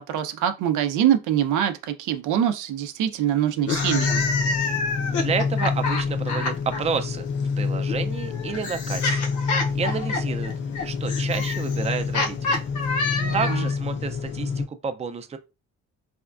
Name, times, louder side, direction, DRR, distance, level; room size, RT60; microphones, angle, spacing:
voice 1, 0.0-4.3 13.2-13.7, right 10 dB, 80° right, 0.5 m, -24 dB
sound 1, 3.6-6.8 7.9-13.8, left 3 dB, 75° left, 0.7 m, -28 dB
sound 2, 3.8-14.7, left 5 dB, 40° left, 0.5 m, -27 dB
voice 2, 5.1-7.3 7.6-9.3 9.7-10.5 10.8-12.4 13.3-15.4, right 5 dB, 20° right, 0.4 m, -30 dB
4.2 x 2.2 x 2.4 m
cardioid pair, 90°, 30 cm